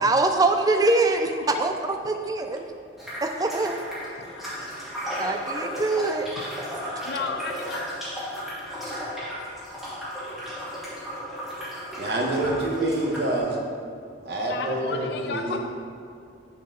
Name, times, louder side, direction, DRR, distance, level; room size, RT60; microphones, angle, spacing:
voice 1, 0.0-2.6 3.2-3.8 5.2-6.3, right 2 dB, 20° right, 6 dB, 0.3 m, -23 dB
voice 2, 1.1-1.6 3.0-3.2 4.2-5.2 5.8-5.9 6.4-7.8 14.5-15.6, left 5 dB, 60° left, 4 dB, 0.4 m, -36 dB
sound 1, 3.0-13.4, equal, ahead, 1.4 m, -34 dB
voice 3, 12.0-13.6 14.2-15.6, right 1 dB, 55° right, -1 dB, 1.0 m, -26 dB
6.3 x 5.7 x 3.7 m, 2.4 s
head